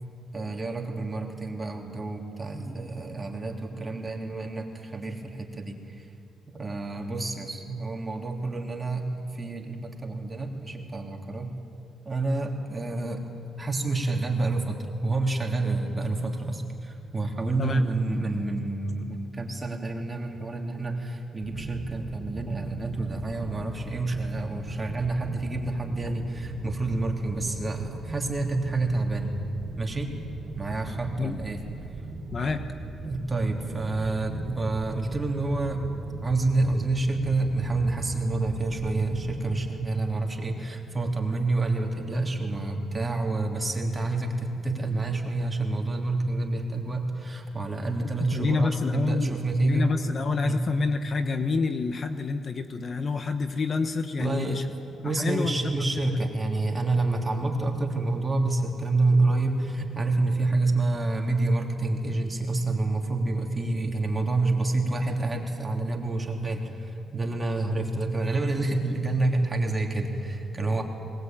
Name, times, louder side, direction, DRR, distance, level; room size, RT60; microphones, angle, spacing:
voice 1, 0.3-6.1 6.5-11.5 12.0-13.2 13.6-29.3 29.8-30.1 30.5-31.6 33.0-35.9 36.2-49.8 50.4-50.6 54.2-54.6 55.0-70.8, right 2 dB, 20° right, 1 dB, 3.2 m, -28 dB
voice 2, 17.6-17.9 31.2-31.4 32.3-32.6 48.3-54.6 55.0-55.5 55.9-56.2, left 4 dB, 45° left, 8 dB, 1.1 m, -28 dB
sound 1, 21.4-39.6, right 2 dB, 40° right, 3.3 m, -39 dB
21.0 x 20.0 x 9.1 m, 2.5 s
cardioid pair, 90°, 0 cm